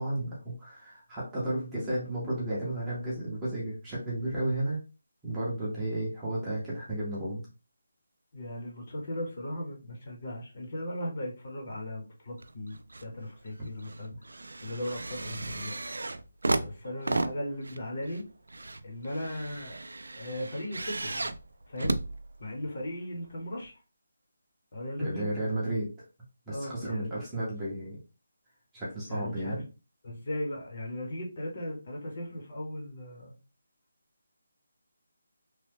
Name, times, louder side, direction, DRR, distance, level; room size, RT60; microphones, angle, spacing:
voice 1, 0.0-4.8 5.2-7.4 25.0-25.9 26.5-28.0 28.7-29.6, right 1 dB, 5° right, -8 dB, 0.6 m, -33 dB
voice 2, 8.3-14.1 14.6-15.7 16.5-18.2 18.8-19.8 20.2-21.3 21.7-22.0 22.4-23.7 24.7-25.3 26.5-27.2 29.1-29.6 30.0-33.4, left 1 dB, 30° left, 0 dB, 0.7 m, -37 dB
sound 1, 12.4-13.1 13.5-22.8 23.6-23.7, right 2 dB, 90° right, 0.3 m, -35 dB
3.0 x 2.0 x 3.2 m, 0.32 s
hypercardioid pair, 180°, 0 cm